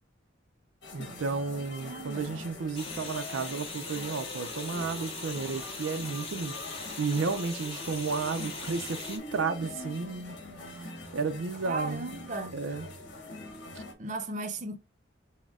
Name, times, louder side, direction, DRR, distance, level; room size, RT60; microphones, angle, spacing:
sound 1, 0.8-13.9, left 2 dB, 60° left, 1.4 m, -44 dB
voice 1, 0.9-6.5 7.0-10.4 11.1-12.1 12.5-12.9 13.8-13.9, right 4 dB, 90° right, 0.5 m, -32 dB
voice 2, 1.8-2.3 11.6-12.6 14.0-14.8, right 2 dB, 40° right, 0.6 m, -36 dB
sound 2, 2.7-9.2, left 3 dB, 30° left, 1.3 m, -40 dB
6.1 x 2.2 x 3.6 m
head